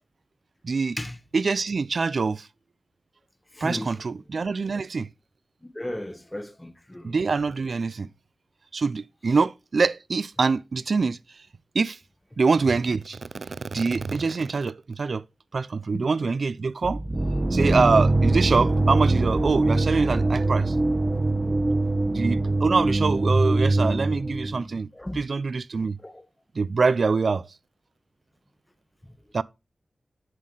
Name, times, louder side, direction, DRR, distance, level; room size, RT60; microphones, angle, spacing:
voice 1, 0.6-1.0 1.3-2.5 3.6-5.1 7.0-8.1 8.7-11.2 11.7-12.0 12.4-15.2 15.5-17.0 17.5-20.8 22.1-26.0 26.6-27.5 29.3-29.4, right 4 dB, 55° right, 0.3 m, -24 dB
voice 2, 3.6-3.9 5.8-7.1 15.9-16.0 25.0-25.2 26.0-26.2, left 1 dB, 10° left, 0.9 m, -34 dB
sound 1, 16.8-24.7, right 2 dB, 20° right, 0.9 m, -23 dB
7.3 x 4.2 x 4.9 m
wide cardioid pair, 140°, 0 cm